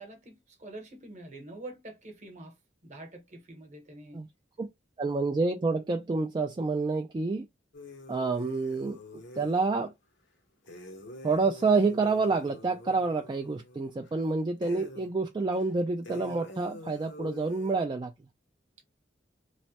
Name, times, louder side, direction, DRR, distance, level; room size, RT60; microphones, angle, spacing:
voice 1, 0.0-2.5 2.8-4.2, right 2 dB, 40° right, 0.9 m, -46 dB
voice 2, 5.0-7.5 8.1-9.0 9.4-9.9 11.2-18.1, right 3 dB, 25° right, 0.3 m, -28 dB
sound 1, 7.7-9.7 10.6-14.2 14.6-15.1 15.5-15.6 16.0-17.7, left 1 dB, 70° left, 0.8 m, -46 dB
3.1 x 2.1 x 2.8 m
head